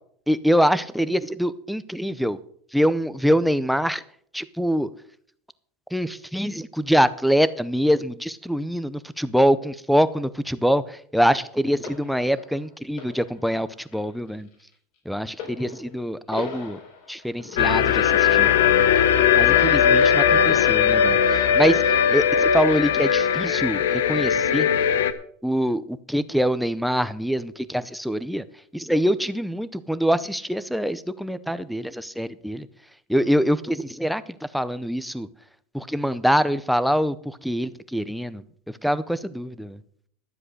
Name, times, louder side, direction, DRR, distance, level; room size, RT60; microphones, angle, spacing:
voice 1, 0.3-2.4 2.7-4.0 4.3-4.9 5.9-14.5 15.1-16.8 17.1-18.5 19.4-21.2 21.5-21.8 22.1-24.7 25.4-28.4 28.7-32.7 33.1-34.2 34.5-35.3 35.7-38.4 38.8-39.8, equal, ahead, 14 dB, 0.6 m, -24 dB
sound 1, 11.8-21.5 21.9-22.9 23.7-23.8, left 6 dB, 55° left, 4.6 m, -42 dB
sound 2, 17.6-25.1, left 8 dB, 90° left, 1.0 m, -19 dB
12.5 x 7.7 x 6.5 m, 0.62 s
supercardioid pair, 140°, 0 cm